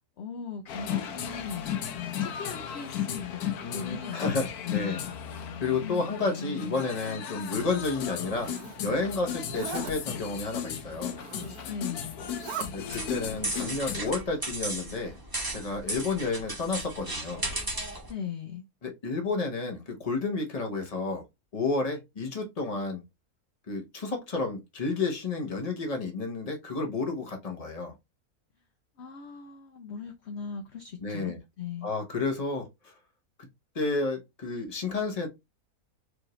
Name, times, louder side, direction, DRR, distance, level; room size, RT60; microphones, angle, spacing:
voice 1, 0.2-5.1 5.8-6.0 6.4-6.8 11.6-12.3 18.1-18.6 29.0-31.9, left 7 dB, 60° left, 0.8 m, -39 dB
sound 1, 0.7-14.1, left 9 dB, 80° left, 1.2 m, -35 dB
voice 2, 3.6-5.0 5.6-8.5 8.8-11.2 12.7-15.2 15.5-17.4 18.8-21.2 21.5-23.0 23.7-27.9 31.0-31.4 31.8-32.9 33.7-35.3, left 3 dB, 30° left, 1.0 m, -31 dB
Zipper (clothing), 8.0-8.8 9.4-9.9 11.0-11.8 12.2-12.7, right 6 dB, 75° right, 1.4 m, -39 dB
sound 2, 12.9-18.1, right 1 dB, 15° right, 1.1 m, -35 dB
4.8 x 2.7 x 3.1 m
omnidirectional pair, 1.6 m